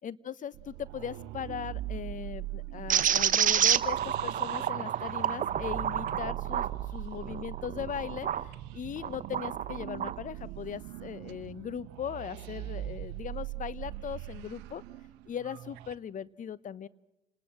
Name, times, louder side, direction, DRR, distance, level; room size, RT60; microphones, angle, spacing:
voice 1, 0.0-6.7 6.9-14.8 15.3-16.9, left 8 dB, 50° left, 18 dB, 1.1 m, -39 dB
sound 1, 0.5-15.9, right 15 dB, 75° right, 0.8 m, -41 dB
sound 2, 2.9-8.5 9.0-10.2, right 9 dB, 50° right, 1.0 m, -29 dB
29.0 x 20.0 x 7.6 m, 0.95 s
hypercardioid pair, 60°, 18 cm